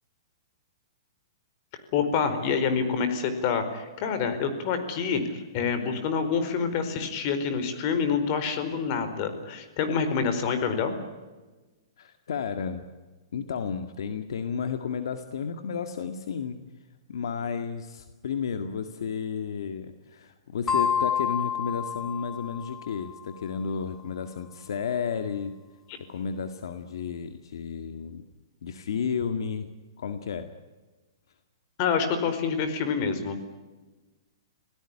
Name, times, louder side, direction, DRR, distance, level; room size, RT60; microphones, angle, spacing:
voice 1, 1.9-10.9 31.8-33.4, left 6 dB, 40° left, 9 dB, 4.6 m, -27 dB
voice 2, 12.0-12.9 13.3-16.6 17.1-25.5 26.1-28.2 28.6-29.7 30.0-30.5, left 6 dB, 75° left, 8 dB, 1.9 m, -32 dB
sound 1, 20.7-23.2, left 7 dB, 10° left, 1.9 m, -29 dB
26.5 x 17.5 x 10.0 m, 1.2 s
hypercardioid pair, 150°, 2 cm